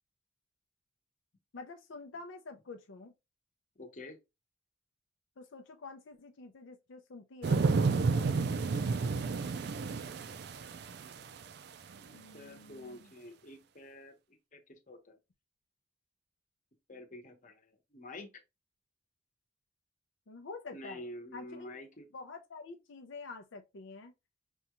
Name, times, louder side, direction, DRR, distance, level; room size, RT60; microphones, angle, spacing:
voice 1, 1.5-3.1 5.4-8.1 12.1-13.1 20.3-21.0 21.3-21.7 22.1-24.1, left 3 dB, 85° left, 0.5 m, -48 dB
voice 2, 3.8-4.2 12.0-14.1 14.5-15.1 16.9-18.3 20.7-22.1, left 1 dB, 40° left, 0.9 m, -48 dB
sound 1, 7.4-11.4 12.0-12.1, right 4 dB, 55° right, 0.4 m, -31 dB
5.3 x 2.3 x 2.9 m
head